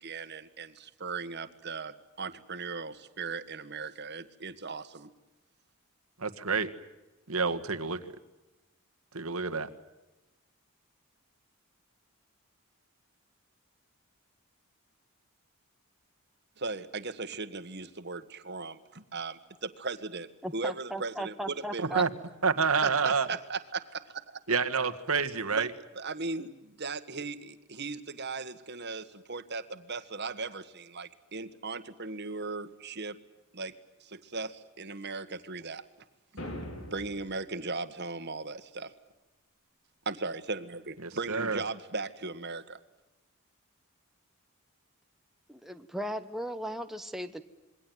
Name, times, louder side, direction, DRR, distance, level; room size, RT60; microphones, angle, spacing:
voice 1, 0.0-5.1 16.6-22.1 22.8-24.4 25.5-25.7 26.0-33.2 33.5-33.7 34.0-35.9 36.9-38.9 40.1-42.8, right 3 dB, 50° right, 11 dB, 1.7 m, -37 dB
voice 2, 6.2-6.7 7.3-8.0 9.1-9.7 21.8-22.1 22.4-23.3 24.5-25.7 41.0-41.6, right 5 dB, 80° right, 8 dB, 1.8 m, -28 dB
voice 3, 20.4-22.0 45.5-47.4, equal, ahead, 7 dB, 1.1 m, -37 dB
sound 1, 36.4-37.4, left 1 dB, 65° left, 5.4 m, -40 dB
27.0 x 22.0 x 9.3 m, 1.0 s
head